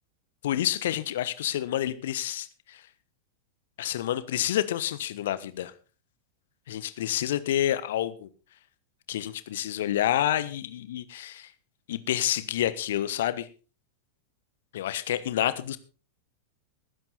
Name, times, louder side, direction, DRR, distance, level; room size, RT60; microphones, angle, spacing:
voice 1, 0.4-2.9 3.8-5.7 6.7-8.3 9.1-11.5 11.9-13.5 14.7-15.8, left 12 dB, 60° left, 1.2 m, -28 dB
19.5 x 10.5 x 4.2 m
figure-of-eight pair, 90°, 0 cm